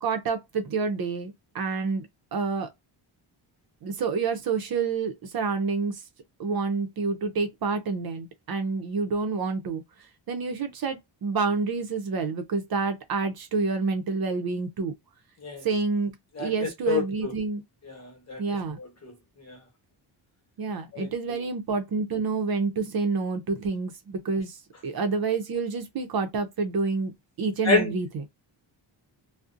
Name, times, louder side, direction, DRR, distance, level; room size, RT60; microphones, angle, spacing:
voice 1, 0.0-2.7 3.8-6.0 6.4-14.9 15.6-17.6 18.4-18.8 20.6-27.1 27.4-28.3, right 4 dB, 50° right, 0.5 m, -28 dB
voice 2, 16.4-17.3 17.9-18.4 18.8-19.1 19.4-19.6 20.9-21.1 27.6-27.9, left 3 dB, 35° left, 1.0 m, -28 dB
2.5 x 2.0 x 2.5 m
cardioid pair, 120°, 47 cm